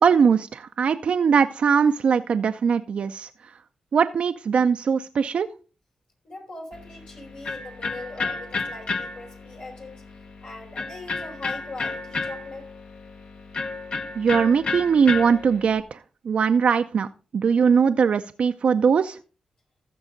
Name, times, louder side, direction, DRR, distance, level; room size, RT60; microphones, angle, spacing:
voice 1, 0.0-3.3 3.9-5.5 14.2-16.0 16.2-17.1 17.3-19.2, right 6 dB, 70° right, 8 dB, 0.5 m, -20 dB
voice 2, 6.2-10.0 10.4-12.7, left 2 dB, 80° left, -2 dB, 4.0 m, -40 dB
Electric guitar, 6.7-15.8, left 3 dB, 65° left, 1.2 m, -32 dB
14.5 x 6.2 x 3.8 m, 0.35 s
supercardioid pair, 40°, 2 cm